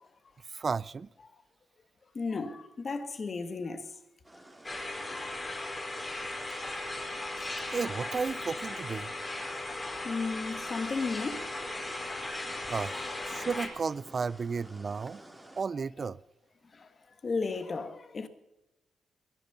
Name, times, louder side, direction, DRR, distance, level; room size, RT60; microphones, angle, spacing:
voice 1, 0.5-1.1 7.7-9.1 12.7-15.2 15.6-16.2, right 5 dB, 40° right, 0.4 m, -33 dB
voice 2, 2.1-3.9 5.1-5.4 7.4-7.5 9.2-9.3 9.9-11.5 16.7-16.9 17.2-18.3, left 4 dB, 35° left, 1.7 m, -34 dB
sound 1, 4.2-15.6, right 1 dB, 10° right, 2.4 m, -52 dB
sound 2, 4.6-13.7, left 2 dB, 20° left, 4.2 m, -37 dB
21.5 x 10.5 x 5.6 m
cardioid pair, 115°, 0 cm